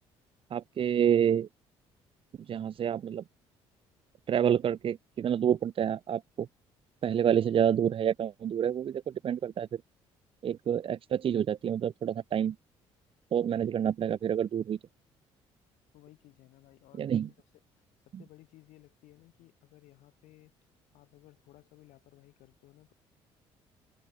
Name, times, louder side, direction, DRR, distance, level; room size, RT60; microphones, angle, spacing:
voice 1, 0.5-1.5 2.5-3.2 4.3-6.5 7.0-9.7 10.4-12.6 13.3-14.8 17.0-17.3, right 9 dB, 45° right, 0.6 m, -28 dB
voice 2, 15.9-20.5 20.9-22.9, left 17 dB, 80° left, 7.3 m, -58 dB
supercardioid pair, 70°, 12 cm